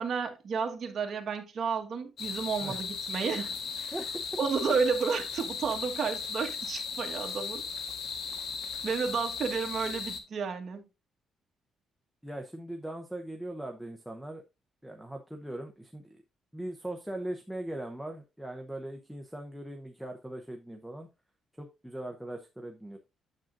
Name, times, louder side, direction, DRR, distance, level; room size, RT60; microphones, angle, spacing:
voice 1, 0.0-3.9 4.4-7.6 8.8-10.8, right 5 dB, 45° right, 1.5 m, -31 dB
sound 1, 2.2-10.2, left 5 dB, 65° left, 1.4 m, -37 dB
voice 2, 3.9-4.4 12.2-14.4 14.8-16.2 16.5-21.1 21.6-23.0, right 1 dB, ahead, 0.7 m, -40 dB
8.9 x 7.2 x 2.6 m
cardioid pair, 145°, 0 cm